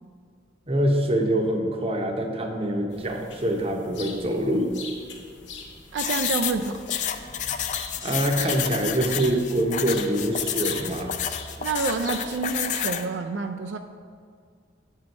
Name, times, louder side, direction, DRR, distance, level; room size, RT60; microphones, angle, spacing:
voice 1, 0.7-4.7 8.0-11.2, right 1 dB, 35° right, 3 dB, 0.7 m, -25 dB
sound 1, 2.9-12.8, left 4 dB, 75° left, 1.0 m, -41 dB
voice 2, 5.9-6.8 11.6-13.8, right 4 dB, 75° right, 6 dB, 0.3 m, -28 dB
sound 2, 6.0-13.1, left 9 dB, 45° left, 0.3 m, -30 dB
7.4 x 4.5 x 5.2 m, 2.2 s
head